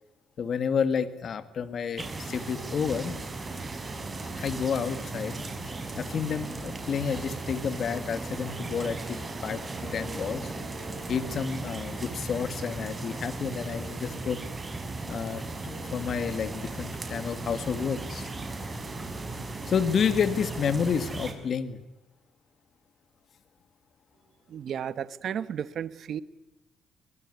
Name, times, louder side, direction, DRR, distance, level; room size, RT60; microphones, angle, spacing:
voice 1, 0.4-3.1 4.4-5.4 5.9-10.5 11.1-14.4 15.1-18.3 19.7-21.8, left 7 dB, 55° left, 11 dB, 2.1 m, -30 dB
sound 1, 2.0-21.3, right 3 dB, 25° right, 5.9 m, -36 dB
voice 2, 24.5-26.2, right 8 dB, 65° right, 15 dB, 1.1 m, -33 dB
23.0 x 21.0 x 9.5 m, 1.0 s
cardioid pair, 90°, 0 cm